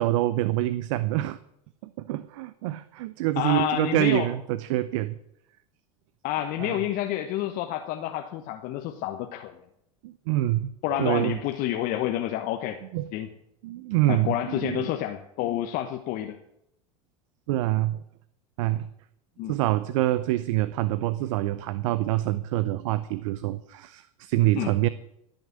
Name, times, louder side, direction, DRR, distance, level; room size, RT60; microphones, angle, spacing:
voice 1, 0.0-1.4 1.8-5.2 6.6-6.8 10.0-11.4 12.9-13.1 13.6-14.8 17.5-18.0 18.6-18.9 19.5-24.9, right 15 dB, 75° right, 15 dB, 0.7 m, -26 dB
voice 2, 3.4-4.3 6.2-9.6 10.8-12.8 13.1-13.3 14.1-16.4 19.4-19.5 24.6-24.8, left 12 dB, 60° left, 5 dB, 1.2 m, -29 dB
16.0 x 6.6 x 9.8 m, 0.79 s
hypercardioid pair, 95°, 17 cm